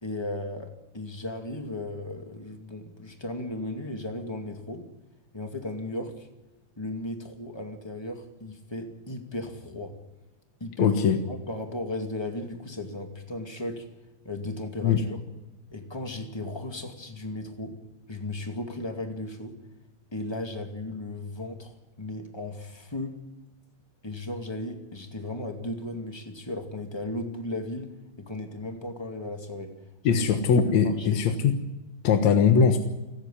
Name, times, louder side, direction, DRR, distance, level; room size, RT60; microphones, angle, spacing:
voice 1, 0.0-4.9 5.3-6.3 6.8-10.0 10.6-10.9 11.3-13.9 14.2-15.2 15.7-17.8 18.1-19.6 20.1-23.2 24.0-27.9 28.2-29.7 30.1-30.2 30.6-31.2, left 1 dB, 15° left, 5 dB, 1.0 m, -36 dB
voice 2, 10.8-11.2 14.8-15.0 30.0-31.6 32.0-32.8, left 6 dB, 60° left, 6 dB, 2.0 m, -21 dB
29.5 x 10.0 x 10.0 m, 1.1 s
omnidirectional pair, 4.7 m